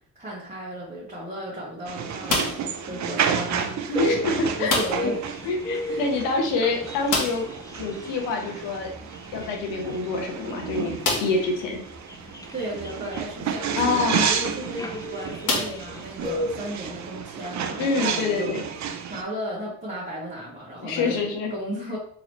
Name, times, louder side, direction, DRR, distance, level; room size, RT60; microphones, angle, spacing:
voice 1, 0.1-4.0 4.6-5.2 5.9-6.3 12.5-22.0, right 1 dB, 15° right, -8 dB, 1.6 m, -35 dB
sound 1, 1.9-19.2, right 7 dB, 40° right, 0.6 m, -31 dB
sound 2, 2.2-2.8 4.6-5.2 5.5-5.6 5.9-6.0 7.1-7.6 9.4-9.5 10.1-10.2 11.0-11.5 12.2-12.3 14.3-14.6 15.4-16.3, left 3 dB, 45° left, 1.3 m, -27 dB
voice 2, 3.9-4.7 5.0-5.1 5.4-7.4 7.7-8.9 9.3-10.9 11.2-11.8 13.7-14.3 17.8-18.6 20.8-21.5, left 3 dB, 75° left, 2 dB, 1.0 m, -26 dB
sound 3, 4.0-16.8, left 1 dB, 10° left, 0.4 m, -36 dB
3.9 x 3.0 x 3.1 m, 0.63 s
hypercardioid pair, 55°, 43 cm